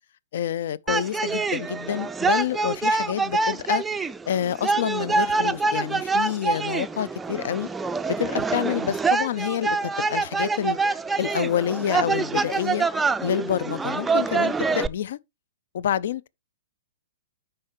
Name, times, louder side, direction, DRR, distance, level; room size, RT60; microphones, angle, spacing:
voice 1, 0.3-3.8 4.3-7.7 8.1-10.8 11.2-12.9 13.2-15.2 15.7-16.3, left 10 dB, 55° left, 0.4 m, -28 dB
sound 1, 0.9-14.9, right 4 dB, 10° right, 0.4 m, -25 dB
9.5 x 5.7 x 3.0 m
figure-of-eight pair, 110°, 0 cm